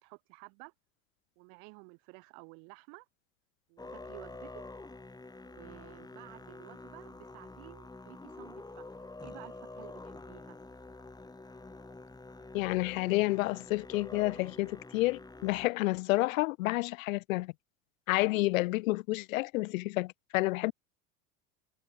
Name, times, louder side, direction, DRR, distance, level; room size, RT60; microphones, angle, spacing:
voice 1, 0.0-0.7 1.4-3.1 3.7-4.6 5.5-10.6, right 40 dB or more, 70° right, 2.6 m, -53 dB
Musical instrument, 3.8-15.7, left 2 dB, 10° left, 2.3 m, -48 dB
voice 2, 12.5-17.5 18.1-20.7, left 20 dB, 85° left, 0.8 m, -30 dB
supercardioid pair, 95°, 39 cm